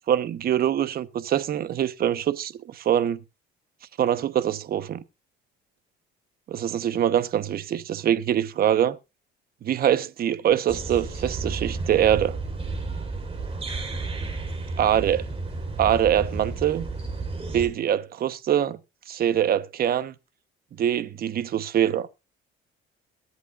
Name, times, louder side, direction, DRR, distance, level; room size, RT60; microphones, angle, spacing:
voice 1, 0.1-3.2 4.0-5.0 6.5-9.0 9.6-12.4 14.8-15.2 15.8-16.9 17.5-18.8 19.1-20.1 20.8-22.1, right 10 dB, 50° right, 1.0 m, -24 dB
sound 1, 10.7-17.7, right 3 dB, 30° right, 4.2 m, -32 dB
22.5 x 8.2 x 2.5 m
cardioid pair, 110°, 20 cm